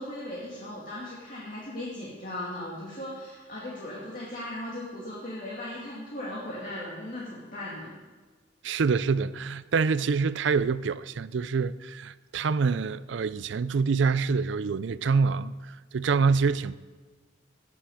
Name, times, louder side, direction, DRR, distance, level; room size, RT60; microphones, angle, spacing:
voice 1, 0.0-7.9, left 1 dB, 45° left, 2.5 m, -37 dB
voice 2, 8.6-16.7, right 5 dB, 70° right, 0.4 m, -26 dB
18.0 x 8.6 x 4.9 m
head